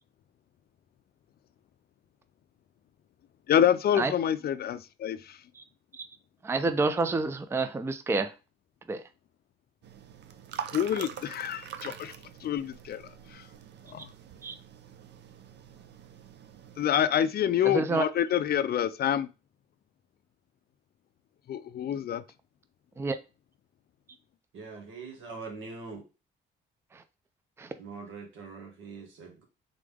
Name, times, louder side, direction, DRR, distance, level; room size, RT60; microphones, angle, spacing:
voice 1, 3.5-5.4 10.7-12.1 12.4-13.0 13.3-13.4 13.9-14.1 16.8-19.3 21.5-22.2, left 10 dB, 50° left, 0.4 m, -27 dB
voice 2, 6.4-8.3 8.9-9.0 14.4-14.5 17.6-18.0 23.0-23.2 26.9-27.0 27.6-27.7, right 3 dB, 15° right, 0.4 m, -28 dB
sound 1, 9.8-16.9, right 8 dB, 60° right, 0.5 m, -44 dB
voice 3, 24.5-26.0 27.8-29.4, right 4 dB, 80° right, 1.6 m, -43 dB
3.8 x 3.4 x 3.5 m
cardioid pair, 90°, 20 cm